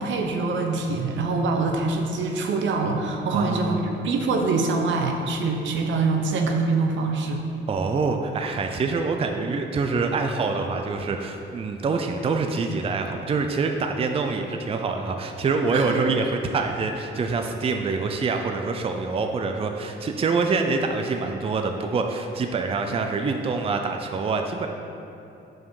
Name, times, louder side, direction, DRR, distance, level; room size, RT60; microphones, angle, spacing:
voice 1, 0.0-7.4 15.7-16.1, right 3 dB, 70° right, 3 dB, 0.8 m, -24 dB
voice 2, 3.3-3.8 7.7-24.7, right 4 dB, 30° right, 4 dB, 0.4 m, -25 dB
5.8 x 5.0 x 4.7 m, 2.9 s
cardioid pair, 90°, 20 cm